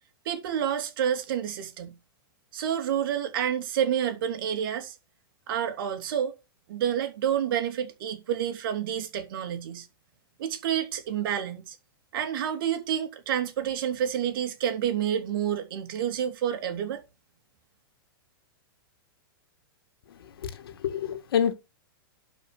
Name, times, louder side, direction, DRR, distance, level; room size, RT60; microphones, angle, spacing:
voice 1, 0.2-1.9 2.5-4.9 5.5-6.3 6.7-9.9 10.4-11.7 12.1-17.0, right 9 dB, 65° right, 2.9 m, -29 dB
voice 2, 20.1-21.5, left 8 dB, 75° left, 2.1 m, -28 dB
12.0 x 5.3 x 6.0 m
hypercardioid pair, 125°, 12 cm